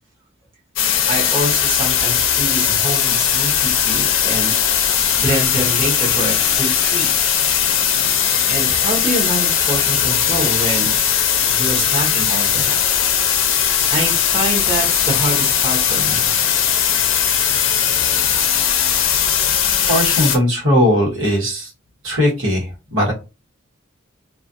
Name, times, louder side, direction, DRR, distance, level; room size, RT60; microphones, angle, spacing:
sound 1, 0.8-20.4, left 8 dB, 80° left, 0.5 m, -18 dB
voice 1, 1.1-4.5 5.1-7.1 8.5-11.0 11.5-12.8 13.9-16.3, right 1 dB, 30° right, -4 dB, 0.9 m, -25 dB
voice 2, 19.9-21.7 22.0-23.1, equal, 80° right, -3 dB, 1.1 m, -18 dB
2.4 x 2.3 x 2.5 m, 0.30 s
head